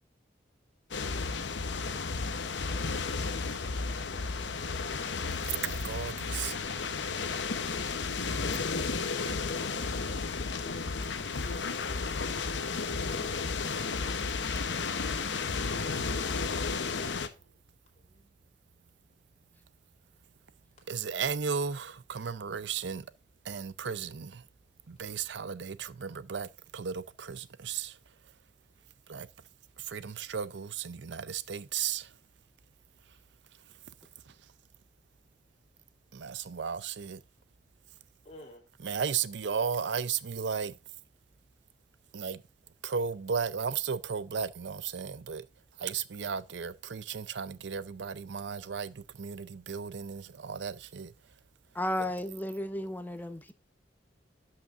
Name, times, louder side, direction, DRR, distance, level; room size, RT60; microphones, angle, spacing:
sound 1, 0.9-17.3, left 4 dB, 85° left, 0.8 m, -33 dB
voice 1, 5.4-6.6 20.9-23.1 23.4-24.4 24.9-28.0 29.1-29.3 29.8-32.1 34.3-34.4 36.1-37.2 38.8-40.7 42.1-42.4 42.8-45.5 45.8-51.1, right 6 dB, 75° right, 0.5 m, -35 dB
voice 2, 17.9-18.3 25.1-25.2 38.2-38.7, left 1 dB, 40° left, 2.7 m, -55 dB
voice 3, 51.7-53.5, left 1 dB, 10° left, 0.7 m, -33 dB
12.0 x 5.6 x 2.4 m
head